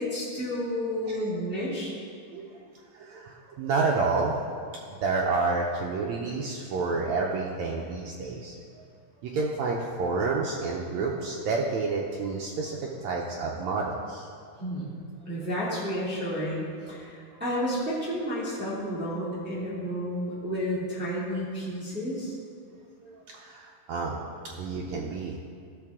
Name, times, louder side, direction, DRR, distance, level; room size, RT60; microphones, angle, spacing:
voice 1, 0.0-1.9 14.6-22.3, equal, 5° right, -9 dB, 2.0 m, -31 dB
voice 2, 2.9-8.8 9.2-14.3 23.0-24.2 24.6-25.4, right 3 dB, 85° right, -1 dB, 1.6 m, -29 dB
15.5 x 6.6 x 3.6 m, 2.3 s
omnidirectional pair, 4.1 m